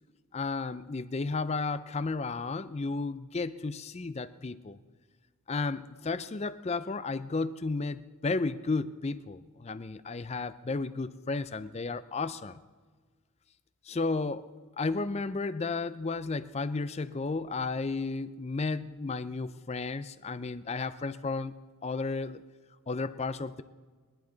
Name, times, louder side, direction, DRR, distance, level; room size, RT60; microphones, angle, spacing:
voice 1, 0.3-4.8 5.5-12.6 13.9-14.5 14.8-21.5 21.8-22.4 22.9-23.6, left 3 dB, 30° left, 14 dB, 0.4 m, -33 dB
20.5 x 11.5 x 3.9 m, 1.5 s
head